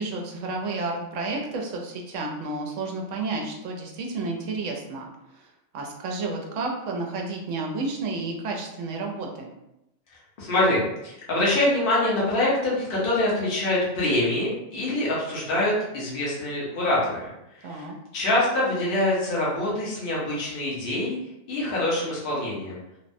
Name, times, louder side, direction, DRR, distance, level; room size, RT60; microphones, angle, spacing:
voice 1, 0.0-5.1 5.3-5.5 5.7-9.5 17.6-17.9, right 3 dB, 75° right, 1 dB, 0.9 m, -31 dB
voice 2, 10.4-17.3 17.5-21.2 21.5-22.8, left 1 dB, 45° left, -7 dB, 1.0 m, -25 dB
3.4 x 2.0 x 2.6 m, 0.87 s
omnidirectional pair, 1.3 m